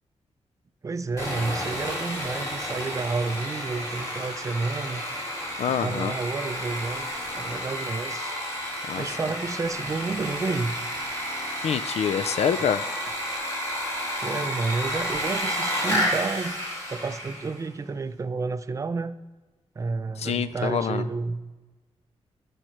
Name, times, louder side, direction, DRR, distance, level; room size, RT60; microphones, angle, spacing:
voice 1, 0.8-5.0 5.8-8.4 9.0-10.8 14.2-16.6 16.9-19.2 19.8-21.5, right 4 dB, 30° right, 12 dB, 0.4 m, -30 dB
Sawing, 1.2-17.6, equal, 25° left, 2.1 m, -31 dB
voice 2, 5.6-6.2 8.9-9.2 11.6-12.9 20.2-21.0, left 8 dB, 75° left, 13 dB, 0.4 m, -26 dB
12.0 x 4.9 x 3.1 m, 1.2 s
wide cardioid pair, 110°, 11 cm